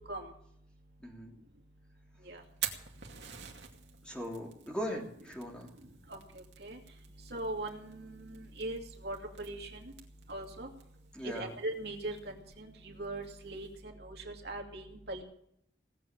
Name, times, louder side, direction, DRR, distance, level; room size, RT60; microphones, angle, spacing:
voice 1, 1.0-1.3 4.0-5.7 11.1-11.6, equal, 5° left, -1 dB, 3.1 m, -39 dB
Fire, 2.4-13.8, right 9 dB, 80° right, 2.4 m, -48 dB
voice 2, 7.3-9.9 10.3-10.7 11.2-13.7 14.0-15.2, right 2 dB, 65° right, 2 dB, 2.6 m, -40 dB
18.0 x 7.6 x 8.9 m, 0.70 s
head